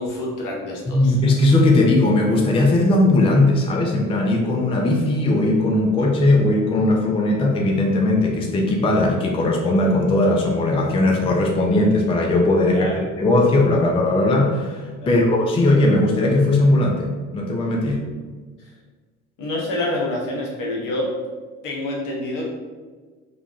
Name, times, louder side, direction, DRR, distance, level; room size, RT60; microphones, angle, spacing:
voice 1, 0.0-1.1 12.7-13.0 15.0-15.3 18.6-18.7 19.4-21.1 21.6-22.5, left 1 dB, 60° left, -2 dB, 0.9 m, -27 dB
voice 2, 0.9-12.9 13.2-18.0, left 2 dB, 15° left, 0 dB, 0.4 m, -18 dB
3.2 x 2.2 x 2.4 m, 1.4 s
hypercardioid pair, 55°, 36 cm